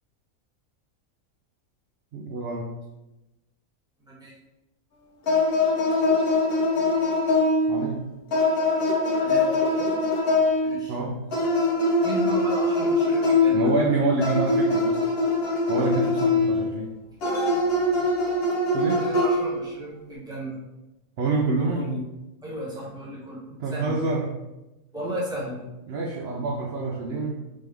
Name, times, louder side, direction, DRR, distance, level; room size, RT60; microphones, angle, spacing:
voice 1, 2.1-2.7 7.7-8.0 10.9-11.2 13.5-15.1 15.7-16.9 18.7-19.1 21.2-21.9 23.6-24.3 25.9-27.4, right 3 dB, 65° right, -1 dB, 0.6 m, -26 dB
voice 2, 4.1-4.4 9.2-10.0 10.6-11.0 12.0-13.7 17.9-18.1 19.0-20.6 21.6-22.0 22.4-24.0 24.9-25.6, right 1 dB, 5° right, -8 dB, 1.0 m, -35 dB
sound 1, 5.3-7.8 8.3-10.8 11.3-13.9 14.2-16.6 17.2-19.7, left 2 dB, 50° left, 0.8 m, -22 dB
3.6 x 3.1 x 3.3 m, 1.0 s
omnidirectional pair, 1.5 m